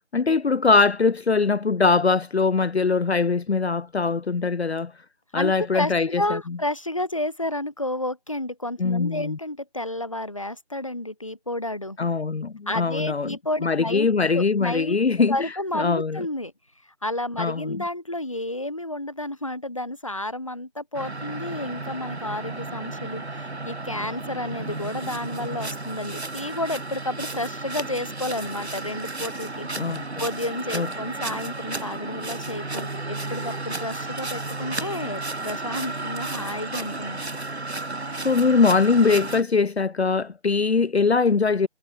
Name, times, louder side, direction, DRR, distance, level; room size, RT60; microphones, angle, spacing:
voice 1, 0.1-4.9 5.3-6.4 8.8-9.4 12.0-16.2 17.4-17.8 29.8-30.0 30.7-30.9 38.2-41.7, left 4 dB, 65° left, 0.7 m, -22 dB
voice 2, 5.3-12.0 12.7-14.1 14.3-15.0 15.3-16.5 17.0-29.7 29.9-37.2, left 1 dB, 30° left, 1.1 m, -31 dB
sound 1, 20.9-39.4, right 2 dB, 65° right, 2.2 m, -33 dB
figure-of-eight pair, 170°, 35 cm